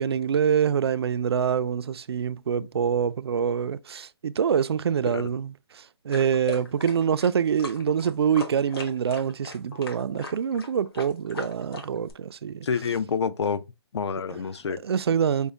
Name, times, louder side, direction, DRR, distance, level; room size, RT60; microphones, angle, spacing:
voice 1, 0.0-12.7 14.8-15.5, right 7 dB, 65° right, 0.4 m, -25 dB
sound 1, 6.1-12.1, left 3 dB, 60° left, 1.2 m, -39 dB
voice 2, 12.6-13.6 13.9-14.8, left 6 dB, 75° left, 0.5 m, -28 dB
5.3 x 2.1 x 3.4 m
hypercardioid pair, 180°, 14 cm